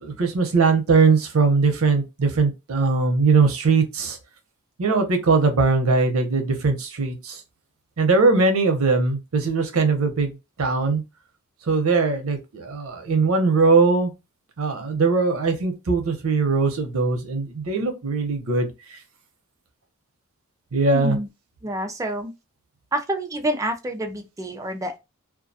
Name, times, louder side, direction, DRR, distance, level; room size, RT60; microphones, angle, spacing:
voice 1, 0.0-4.2 4.8-7.4 8.0-11.0 11.7-14.1 14.6-18.7 20.7-21.2, right 4 dB, 75° right, 0.7 m, -20 dB
voice 2, 20.9-21.3 21.6-22.3 22.9-25.0, right 1 dB, 15° right, 0.3 m, -27 dB
2.3 x 2.2 x 2.6 m
head